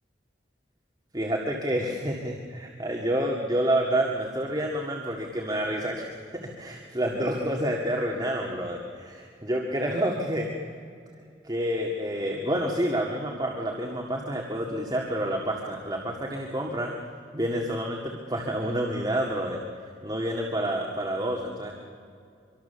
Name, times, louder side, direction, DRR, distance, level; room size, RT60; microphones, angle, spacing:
voice 1, 1.1-10.5 11.4-16.9 17.3-19.6 20.0-21.7, right 1 dB, 25° right, -1 dB, 1.9 m, -28 dB
25.0 x 24.0 x 6.9 m, 2.3 s
head